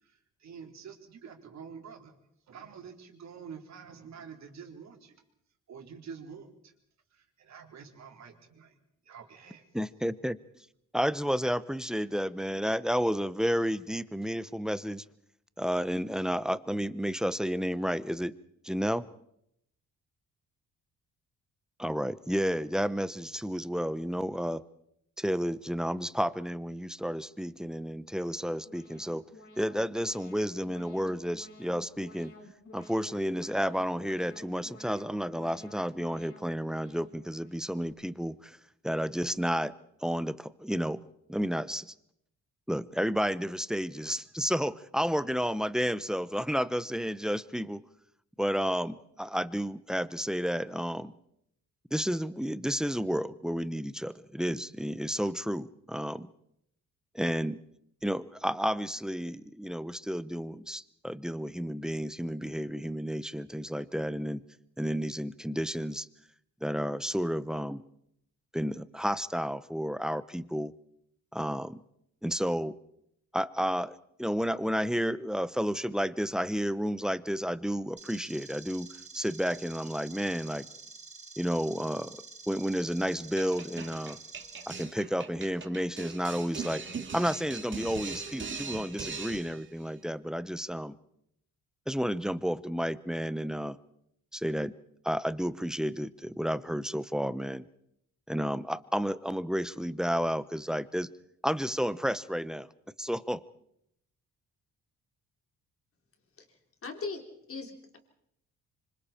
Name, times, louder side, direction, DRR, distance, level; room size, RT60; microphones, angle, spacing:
voice 1, 0.0-2.2 2.5-5.2 5.7-6.7 7.1-8.7 9.0-9.7, right 6 dB, 65° right, 2 dB, 4.0 m, -47 dB
voice 2, 9.7-10.4 10.9-15.0 15.6-18.3 18.6-19.1 21.8-24.6 25.2-29.2 29.6-32.3 32.7-38.6 38.8-39.7 40.0-41.0 41.3-41.9 42.7-47.8 48.4-51.1 51.9-56.3 57.1-57.6 58.0-64.4 64.8-66.1 66.6-67.8 68.5-70.7 71.3-71.8 72.2-72.8 73.3-78.9 79.1-80.7 81.4-82.2 82.5-84.2 84.7-86.8 87.1-90.9 91.9-93.8 94.3-94.7 95.0-97.7 98.3-101.1 101.4-102.7 103.0-103.4, equal, ahead, 16 dB, 0.8 m, -31 dB
Alarm, 28.0-37.9, left 2 dB, 75° left, 5.6 m, -53 dB
sound 1, 78.0-84.8, right 4 dB, 25° right, 2.2 m, -48 dB
sound 2, 83.4-89.7, right 5 dB, 40° right, 2.4 m, -40 dB
voice 3, 106.4-108.0, left 4 dB, 45° left, 4 dB, 3.7 m, -40 dB
26.0 x 25.0 x 4.4 m, 0.75 s
cardioid pair, 90°, 30 cm